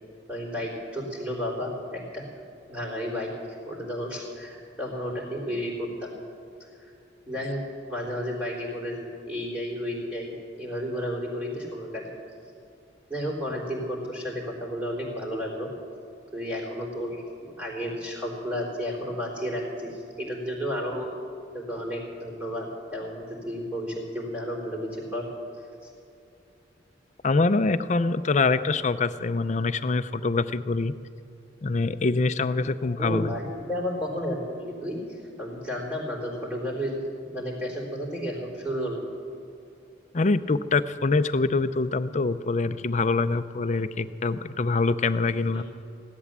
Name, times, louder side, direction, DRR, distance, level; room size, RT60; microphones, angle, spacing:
voice 1, 0.3-2.2 2.7-3.3 3.7-6.1 6.6-6.9 7.3-7.6 7.9-12.0 13.1-15.7 16.3-21.1 21.5-25.3 25.8-25.9 33.0-39.1 45.5-45.6, equal, 10° right, -7 dB, 3.5 m, -32 dB
voice 2, 27.2-30.9 31.6-33.3 40.1-45.6, left 3 dB, 40° left, 12 dB, 0.5 m, -24 dB
17.0 x 11.5 x 7.3 m, 2.7 s
head